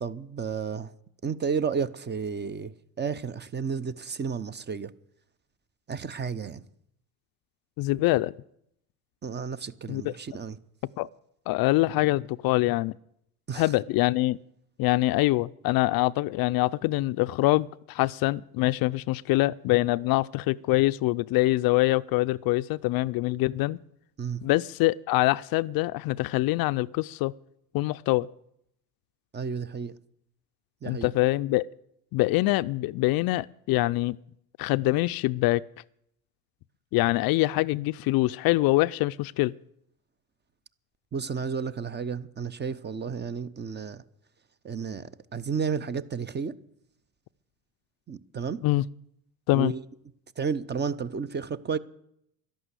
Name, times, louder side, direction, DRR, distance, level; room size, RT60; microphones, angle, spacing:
voice 1, 0.0-0.9 1.2-4.9 5.9-6.6 9.2-10.6 13.5-13.7 24.2-24.4 29.3-29.9 30.8-31.1 41.1-44.0 44.6-46.5 48.1-48.6 49.5-49.8 50.4-51.8, right 6 dB, 25° right, 0.7 m, -32 dB
voice 2, 7.8-8.3 9.9-10.1 11.0-11.1 11.5-12.9 13.5-14.4 14.8-23.8 24.4-27.3 27.7-28.3 30.9-31.7 32.1-34.2 34.6-35.6 36.9-39.5 48.6-48.8 49.5-49.7, left 19 dB, 55° left, 0.5 m, -24 dB
12.0 x 11.0 x 8.2 m
supercardioid pair, 85°, 45 cm